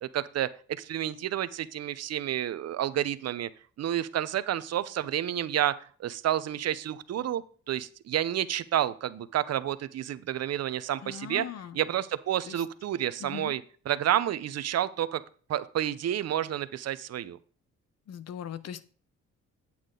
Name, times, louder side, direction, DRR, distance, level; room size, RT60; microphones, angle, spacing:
voice 1, 0.0-3.5 3.8-11.5 11.7-13.6 13.9-15.2 15.5-17.4, right 11 dB, 55° right, 14 dB, 0.7 m, -30 dB
voice 2, 11.0-11.8 12.5-12.6 13.2-13.6 18.1-18.9, left 9 dB, 55° left, 16 dB, 0.8 m, -40 dB
8.6 x 8.3 x 3.8 m, 0.43 s
cardioid pair, 90°, 30 cm